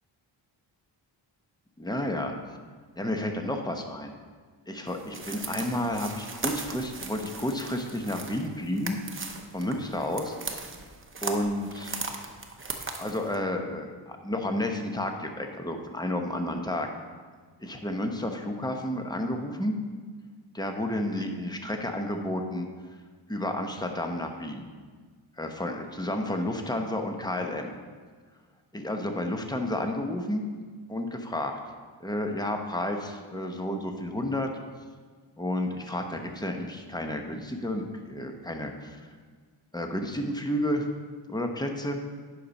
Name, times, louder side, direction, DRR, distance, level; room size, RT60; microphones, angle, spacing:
voice 1, 1.8-2.3 3.0-4.1 4.7-9.0 9.5-10.4 11.2-12.0 13.0-16.9 17.6-19.8 20.5-22.7 23.3-24.7 25.4-27.7 28.7-30.5 30.9-31.6 32.0-34.5 35.4-39.0 39.7-40.8 41.3-42.0, left 1 dB, 10° left, 4 dB, 0.9 m, -31 dB
sound 1, 4.9-13.4, right 3 dB, 25° right, 0.9 m, -38 dB
9.9 x 5.6 x 5.3 m, 1.5 s
wide cardioid pair, 110°, 47 cm